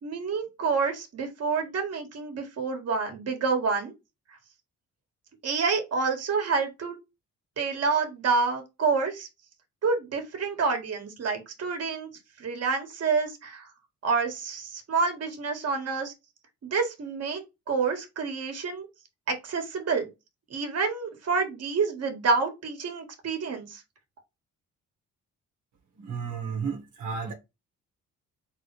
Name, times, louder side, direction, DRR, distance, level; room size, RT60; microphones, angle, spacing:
voice 1, 0.0-3.9 5.4-7.0 7.6-9.3 9.8-12.1 12.4-13.7 14.0-16.1 16.6-17.4 17.7-18.9 19.3-20.1 20.5-23.8, right 4 dB, 55° right, 1.8 m, -28 dB
voice 2, 26.0-27.3, right 6 dB, 75° right, 1.5 m, -33 dB
4.0 x 3.9 x 3.3 m
cardioid pair, 90°, 30 cm